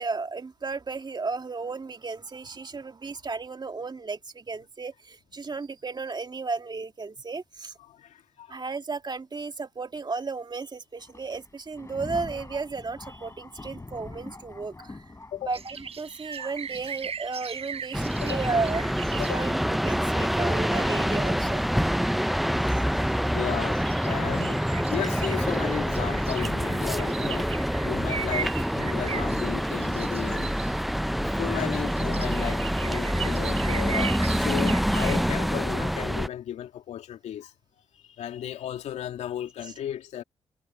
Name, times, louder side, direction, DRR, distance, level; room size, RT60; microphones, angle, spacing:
voice 1, 0.0-7.7 8.5-15.0 15.5-21.6, right 4 dB, 35° right, 2.3 m, -34 dB
voice 2, 7.8-8.6 15.3-15.5 18.2-18.4 19.2-19.4 22.5-22.6 23.2-30.6 31.2-37.5 37.9-40.2, left 10 dB, 75° left, 2.8 m, -35 dB
Thunder, 11.0-20.9 21.7-21.8 22.8-22.9 23.7-23.9, left 2 dB, 25° left, 5.1 m, -46 dB
sound 1, 15.5-19.7 20.0-22.7 22.9-35.3, right 7 dB, 60° right, 5.1 m, -39 dB
sound 2, 17.9-36.3, equal, ahead, 0.5 m, -26 dB
hypercardioid pair, 45°, 12 cm